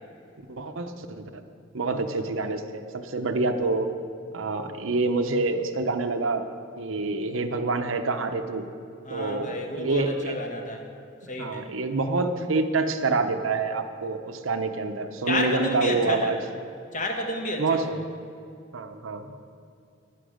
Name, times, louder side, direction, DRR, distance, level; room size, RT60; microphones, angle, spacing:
voice 1, 0.5-1.4 1.7-3.9 4.3-6.4 6.8-8.7 9.1-10.4 11.4-16.4 17.6-18.0 18.7-19.5, right 3 dB, 85° right, 7 dB, 0.8 m, -27 dB
voice 2, 9.0-10.8 11.3-11.6 15.3-16.3 16.9-17.8, left 1 dB, 40° left, 2 dB, 1.4 m, -30 dB
11.5 x 10.5 x 5.0 m, 2.5 s
head